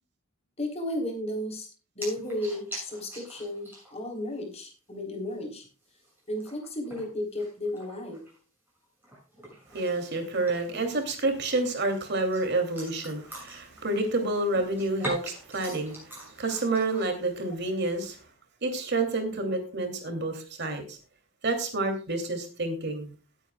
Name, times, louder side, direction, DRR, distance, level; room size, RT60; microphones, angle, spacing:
voice 1, 0.6-1.7 2.0-5.7 6.3-8.2, left 1 dB, 35° left, 3 dB, 3.6 m, -33 dB
sound 1, 2.0-4.1 4.4-4.5 4.9-5.0 5.6-8.4 8.7-10.9 11.3-14.2 14.5-17.0, equal, 10° right, 7.1 m, -43 dB
voice 2, 9.7-18.2 18.6-21.0 21.4-23.1, right 2 dB, 60° right, 6 dB, 2.8 m, -29 dB
18.5 x 9.0 x 2.3 m, 0.35 s
head